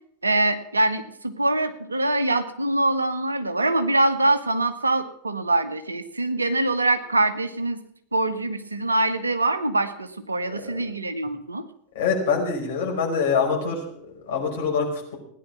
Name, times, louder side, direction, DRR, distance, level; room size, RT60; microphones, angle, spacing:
voice 1, 0.2-7.8 8.1-11.6, right 2 dB, 80° right, 10 dB, 1.3 m, -24 dB
voice 2, 12.0-15.2, left 5 dB, 55° left, 0 dB, 5.4 m, -25 dB
17.5 x 10.5 x 6.1 m, 0.71 s
figure-of-eight pair, 90°, 0 cm